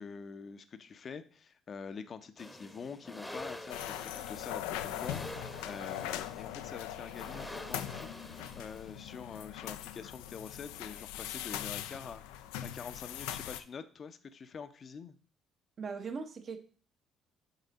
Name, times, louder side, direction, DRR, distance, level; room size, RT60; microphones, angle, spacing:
voice 1, 0.0-15.2, left 6 dB, 45° left, 11 dB, 0.6 m, -46 dB
sound 1, 2.4-9.2, left 1 dB, 5° left, 0.9 m, -47 dB
sound 2, 3.7-13.6, left 12 dB, 80° left, 0.3 m, -41 dB
voice 2, 15.8-16.6, right 5 dB, 50° right, 6 dB, 1.0 m, -39 dB
6.8 x 4.1 x 4.1 m, 0.42 s
hypercardioid pair, 55°, 0 cm